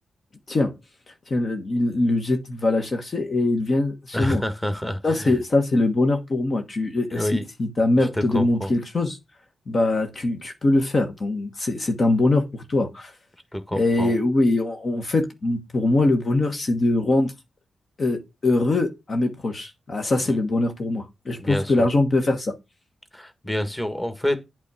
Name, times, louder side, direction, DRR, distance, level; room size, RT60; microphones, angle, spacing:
voice 1, 1.3-4.4 5.0-9.2 9.7-13.1 13.7-17.3 18.0-22.5, left 2 dB, 50° left, 1.3 m, -22 dB
voice 2, 4.1-5.4 7.1-7.4 8.0-8.7 13.5-14.1 21.4-21.9 23.1-24.5, left 1 dB, 15° left, 1.6 m, -28 dB
8.3 x 3.6 x 6.0 m
supercardioid pair, 50°, 0 cm